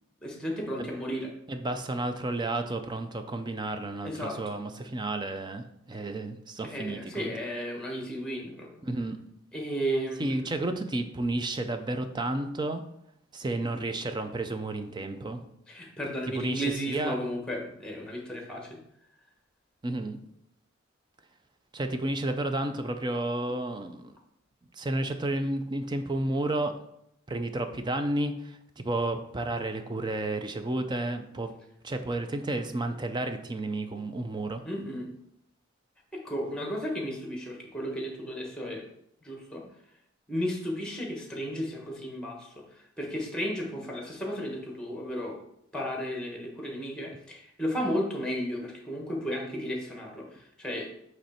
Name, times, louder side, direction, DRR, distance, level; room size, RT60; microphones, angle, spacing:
voice 1, 0.2-1.3 4.0-4.4 5.9-6.0 6.6-8.7 9.5-10.5 15.7-18.8 34.6-35.1 36.1-38.8 39.2-39.6 40.3-45.4 45.7-50.9, equal, 5° left, 0 dB, 1.3 m, -34 dB
voice 2, 1.5-7.3 8.8-9.2 10.2-12.8 13.3-15.4 16.3-17.2 19.8-20.2 21.7-24.1 24.7-26.7 27.3-31.5 31.8-34.6, right 2 dB, 20° right, 8 dB, 0.5 m, -31 dB
7.9 x 3.2 x 4.3 m, 0.76 s
head